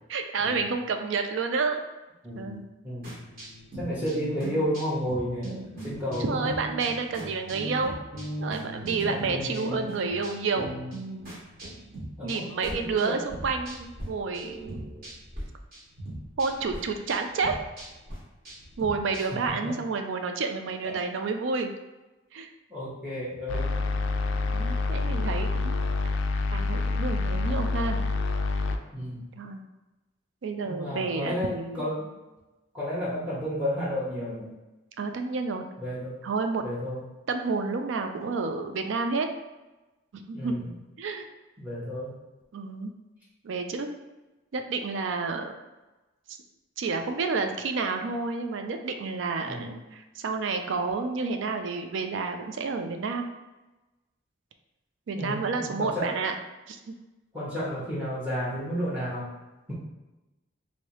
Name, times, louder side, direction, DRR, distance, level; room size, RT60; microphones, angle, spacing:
voice 1, 0.1-1.8 2.4-2.6 6.2-7.9 8.4-10.8 12.2-14.9 16.4-17.6 18.8-21.7 22.3-22.5 24.5-25.8 26.5-28.0 29.4-29.6 30.4-31.8 35.0-35.6 36.2-36.6 37.3-39.3 40.1-40.5 41.0-41.3 42.5-42.9 43.4-43.9 44.5-45.5 46.8-53.3 55.1-56.4 56.7-56.8, right 4 dB, 70° right, 6 dB, 0.4 m, -30 dB
voice 2, 2.2-3.1 3.8-6.5 7.2-7.3 8.9-9.9 12.2-13.2 14.3-15.1 20.8-21.0 22.7-23.8 28.9-29.3 30.7-32.1 32.7-34.5 35.8-36.1 36.6-37.0 40.3-40.7 41.6-42.1 49.4-49.7 55.1-56.1 57.3-59.3, equal, 5° right, -8 dB, 0.8 m, -32 dB
sound 1, 3.0-14.1 14.3-15.4 15.7-19.5, right 1 dB, 45° right, 1.2 m, -39 dB
sound 2, 23.5-28.8, left 3 dB, 70° left, 0.3 m, -27 dB
3.2 x 2.7 x 3.0 m, 1.1 s
head